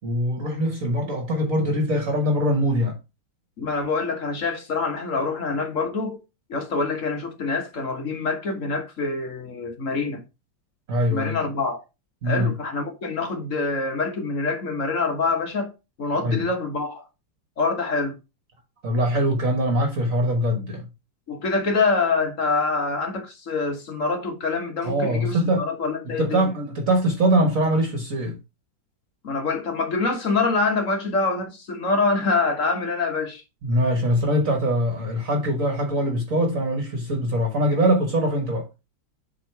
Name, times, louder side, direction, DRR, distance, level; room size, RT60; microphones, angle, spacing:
voice 1, 0.0-3.0 10.9-11.4 12.2-12.5 16.2-16.4 18.8-20.8 24.8-25.6 26.0-28.4 33.6-38.6, equal, 45° right, 1.7 m, -22 dB
voice 2, 3.6-6.2 6.5-10.2 11.1-11.8 12.2-15.7 16.0-17.0 17.6-18.2 21.3-26.5 29.2-33.4, left 3 dB, 45° left, 1.5 m, -25 dB
7.6 x 3.7 x 4.6 m
omnidirectional pair, 2.0 m